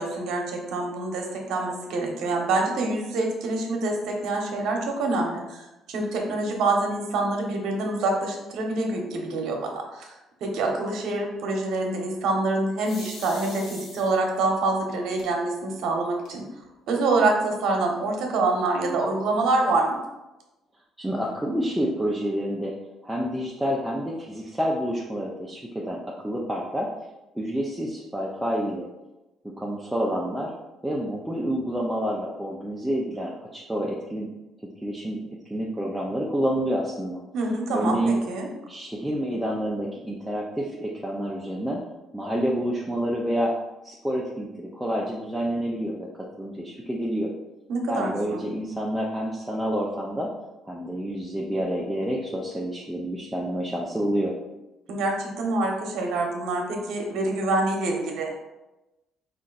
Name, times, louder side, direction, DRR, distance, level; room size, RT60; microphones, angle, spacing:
voice 1, 0.0-5.6 5.9-10.1 10.4-16.4 16.9-20.0 37.3-38.5 47.7-48.4 54.9-58.3, right 2 dB, 70° right, 1 dB, 0.9 m, -26 dB
sound 1, 12.8-14.4 15.2-15.3 15.7-15.8 16.1-16.7, left 2 dB, 65° left, 1.2 m, -42 dB
voice 2, 21.0-22.7 23.0-26.9 27.3-28.9 29.6-30.5 30.8-34.3 34.8-35.2 35.5-37.2 37.7-38.2 38.7-41.8 42.1-43.5 43.8-46.1 46.4-47.3 47.9-50.3 50.7-54.3, equal, 5° right, -3 dB, 0.5 m, -28 dB
4.3 x 2.5 x 3.9 m, 1.0 s
cardioid pair, 110°, 0 cm